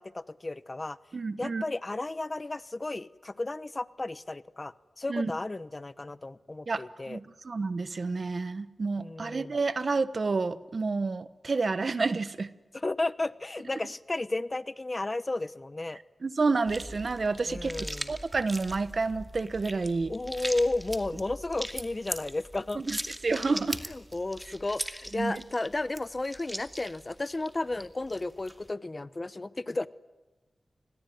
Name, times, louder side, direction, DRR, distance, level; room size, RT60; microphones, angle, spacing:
voice 1, 0.0-1.0 1.4-7.2 9.0-9.6 12.7-16.0 17.5-18.1 20.1-22.8 23.5-29.9, left 2 dB, 35° left, 16 dB, 0.9 m, -33 dB
voice 2, 1.1-1.6 5.1-5.3 6.7-12.5 16.2-20.1 22.7-23.0 23.2-23.8 25.1-25.4, right 4 dB, 60° right, 14 dB, 1.2 m, -29 dB
sound 1, 16.6-28.7, equal, 10° right, 2.4 m, -40 dB
29.0 x 21.5 x 9.4 m, 1.2 s
wide cardioid pair, 70°, 0 cm